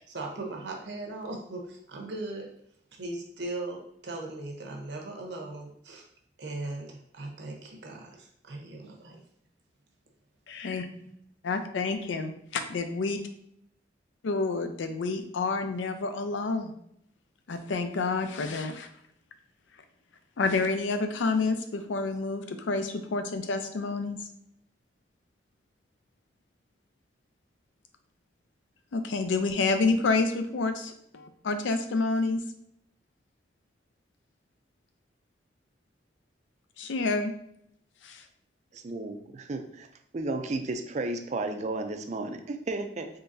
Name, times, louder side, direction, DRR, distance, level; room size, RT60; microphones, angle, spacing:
voice 1, 0.0-2.5 3.0-6.1 6.4-9.2 10.9-11.1, right 2 dB, 70° right, 0 dB, 0.8 m, -38 dB
voice 2, 10.5-10.9 11.4-13.2 14.2-16.7 17.5-18.9 20.4-24.2 28.9-32.4 36.8-37.3 38.0-38.2, left 3 dB, 90° left, 8 dB, 0.5 m, -29 dB
voice 3, 38.7-39.9 40.1-43.1, right 2 dB, 40° right, 6 dB, 0.4 m, -33 dB
3.8 x 3.3 x 2.6 m, 0.71 s
head